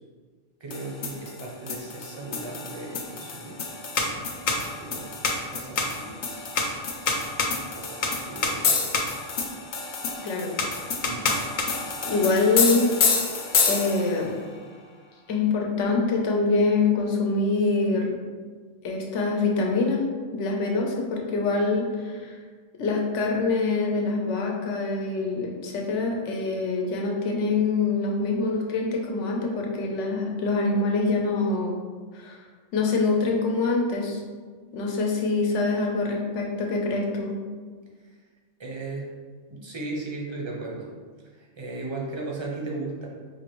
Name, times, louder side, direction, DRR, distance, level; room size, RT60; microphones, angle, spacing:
voice 1, 0.6-3.6 4.0-5.1 5.5-6.4 7.6-9.0 11.0-11.4 38.0-38.1 38.6-39.1 39.5-40.9 41.3-43.1, right 2 dB, 35° right, -3 dB, 0.5 m, -36 dB
sound 1, 0.7-14.2, left 4 dB, 60° left, 0.5 m, -27 dB
voice 2, 10.2-10.5 12.0-12.9 13.7-14.3 15.3-18.1 18.8-20.0 20.3-22.4 22.8-31.7 32.1-32.4 32.7-34.2 34.7-37.3, left 3 dB, 85° left, 0 dB, 1.0 m, -25 dB
4.3 x 2.5 x 3.0 m, 1.5 s
omnidirectional pair, 1.2 m